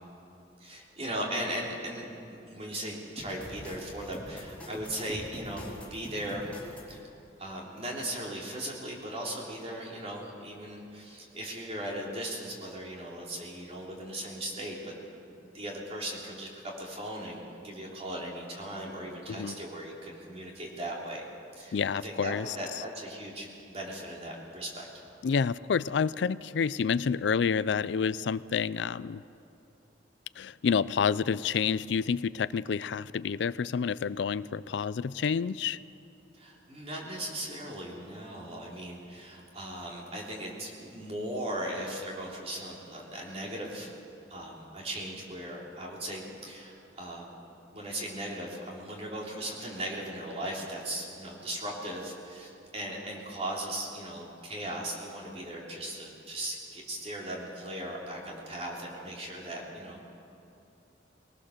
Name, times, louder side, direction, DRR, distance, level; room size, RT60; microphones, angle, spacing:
voice 1, 0.6-6.5 6.9-7.1 7.4-14.9 15.3-16.5 16.8-21.2 21.5-21.8 22.0-24.9 36.3-44.0 44.3-47.2 47.7-60.0, right 1 dB, 35° right, -2 dB, 3.6 m, -38 dB
sound 1, 3.2-7.0, equal, 10° left, 3.4 m, -44 dB
voice 2, 19.3-19.6 21.7-22.6 25.2-29.2 30.4-35.8, left 6 dB, 70° left, 17 dB, 0.4 m, -29 dB
22.0 x 19.0 x 6.6 m, 2.7 s
head